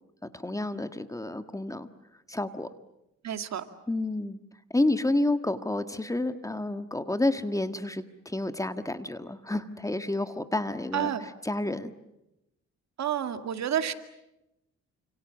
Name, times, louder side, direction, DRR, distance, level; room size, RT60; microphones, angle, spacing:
voice 1, 0.3-1.9 2.3-2.7 3.9-4.4 4.7-11.9, left 2 dB, 10° left, 9 dB, 1.6 m, -30 dB
voice 2, 3.2-3.6 10.9-11.2 13.0-13.9, right 10 dB, 65° right, 8 dB, 2.3 m, -29 dB
29.5 x 27.0 x 7.3 m, 0.88 s
cardioid pair, 105°, 29 cm